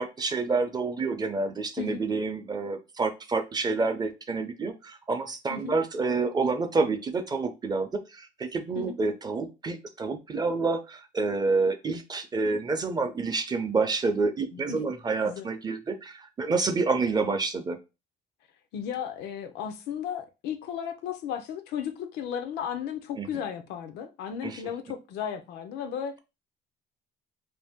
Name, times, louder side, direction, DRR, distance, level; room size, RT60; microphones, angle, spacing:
voice 1, 0.0-17.8 23.2-23.3 24.4-24.6, right 4 dB, 25° right, 0.5 m, -28 dB
voice 2, 18.7-26.1, left 8 dB, 85° left, 0.5 m, -34 dB
2.6 x 2.5 x 3.5 m
cardioid pair, 110°, 17 cm